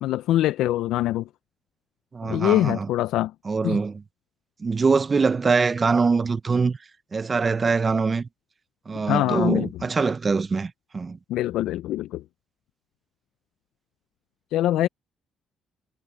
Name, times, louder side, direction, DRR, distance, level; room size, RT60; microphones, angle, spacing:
voice 1, 0.0-1.3 2.2-3.3 3.6-3.8 9.1-9.7 11.3-12.2 14.5-14.9, left 14 dB, 85° left, 0.4 m, -23 dB
voice 2, 2.1-2.9 3.4-4.0 4.6-6.8 7.1-8.3 8.9-11.2, right 4 dB, 35° right, 0.7 m, -23 dB
cardioid pair, 80°, 0 cm